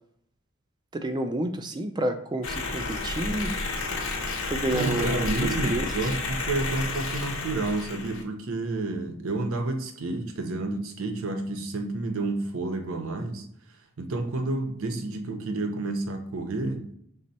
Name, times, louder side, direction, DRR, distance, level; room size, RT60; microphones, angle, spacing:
voice 1, 0.9-3.5 4.4-5.3 5.6-5.9, right 1 dB, 20° right, 8 dB, 0.3 m, -29 dB
sound 1, 2.4-8.2, left 3 dB, 90° left, 0.8 m, -31 dB
voice 2, 4.7-13.5 14.0-16.9, right 2 dB, 85° right, 6 dB, 0.6 m, -30 dB
5.1 x 2.0 x 4.1 m, 0.68 s
head